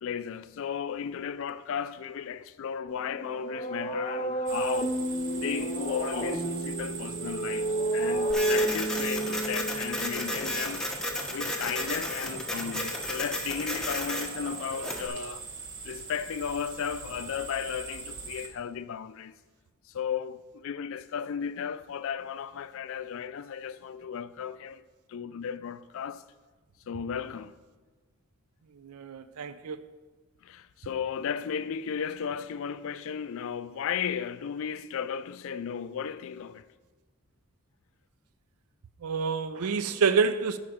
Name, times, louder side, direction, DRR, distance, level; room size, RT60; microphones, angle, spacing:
voice 1, 0.0-5.0 5.4-10.9 11.3-15.4 15.8-19.4 19.9-24.8 25.1-26.2 26.9-27.5 30.4-36.7, left 7 dB, 60° left, 0.3 m, -35 dB
sound 1, 2.9-10.7, right 1 dB, 30° left, 0.8 m, -31 dB
sound 2, 4.5-18.5, right 5 dB, 55° right, 1.2 m, -41 dB
Printer, 8.3-15.1, left 1 dB, 5° left, 0.8 m, -34 dB
voice 2, 28.8-29.8 39.0-40.6, right 5 dB, 80° right, 0.5 m, -27 dB
11.5 x 5.0 x 5.0 m
head